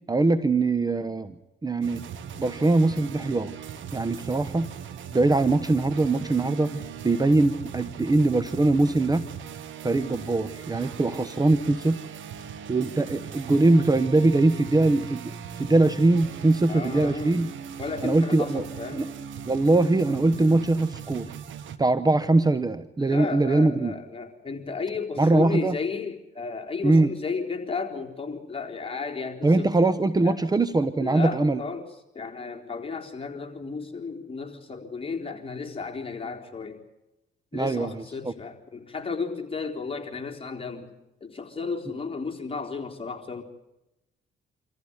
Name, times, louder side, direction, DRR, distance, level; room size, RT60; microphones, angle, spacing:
voice 1, 0.1-1.3 1.6-2.0 2.4-3.5 3.9-4.7 5.1-9.2 9.8-12.0 12.7-15.3 15.6-17.5 18.0-18.6 18.9-19.1 19.5-21.3 21.8-24.0 25.2-25.8 26.8-27.1 29.4-31.6 37.5-38.3, right 2 dB, 20° right, 12 dB, 1.0 m, -22 dB
sound 1, 1.8-21.8, right 7 dB, 75° right, 1.6 m, -39 dB
voice 2, 16.7-17.3 17.8-19.0 23.0-29.7 30.2-30.4 31.0-31.9 32.1-36.8 37.5-40.9 41.2-43.4, left 4 dB, 25° left, 1 dB, 3.8 m, -33 dB
25.5 x 14.5 x 9.8 m, 0.93 s
cardioid pair, 90°, 20 cm